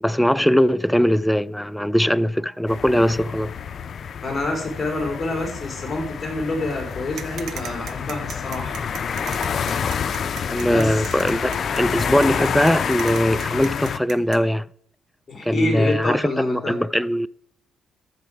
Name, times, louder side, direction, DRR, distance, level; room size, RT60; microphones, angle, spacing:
voice 1, 0.0-3.5 10.5-14.7 15.4-17.3, equal, 5° left, 0.3 m, -20 dB
sound 1, 2.7-14.0, left 7 dB, 50° left, 0.6 m, -28 dB
voice 2, 4.2-8.8 10.7-11.1 15.3-16.7, left 2 dB, 25° left, 3.9 m, -27 dB
sound 2, 7.2-14.4, right 9 dB, 70° right, 0.8 m, -37 dB
13.0 x 6.9 x 4.8 m
cardioid pair, 90°, 0 cm